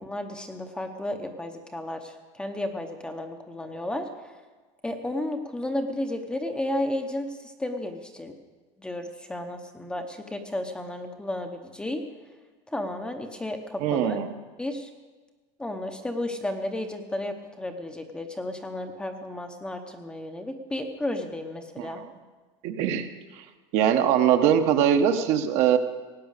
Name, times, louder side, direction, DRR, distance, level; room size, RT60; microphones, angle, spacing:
voice 1, 0.0-4.1 4.8-8.3 8.8-12.0 12.7-14.2 14.6-14.9 15.6-22.0, left 1 dB, 5° left, 5 dB, 0.8 m, -33 dB
voice 2, 13.8-14.3 21.8-22.0 22.6-23.1 23.4-23.5 23.7-25.8, right 9 dB, 45° right, 7 dB, 0.9 m, -22 dB
17.0 x 9.3 x 6.6 m, 1.3 s
supercardioid pair, 165°, 15 cm